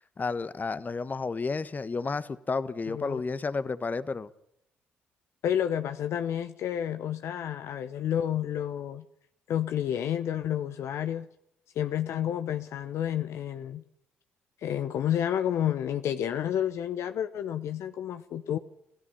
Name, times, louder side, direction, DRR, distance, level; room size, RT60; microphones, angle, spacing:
voice 1, 0.2-4.3, left 4 dB, 35° left, 1.3 m, -31 dB
voice 2, 2.9-3.2 5.4-9.0 9.5-11.3 11.7-13.8 14.6-18.6, left 10 dB, 60° left, 0.9 m, -30 dB
28.0 x 16.5 x 5.6 m
hypercardioid pair, 45°, 5 cm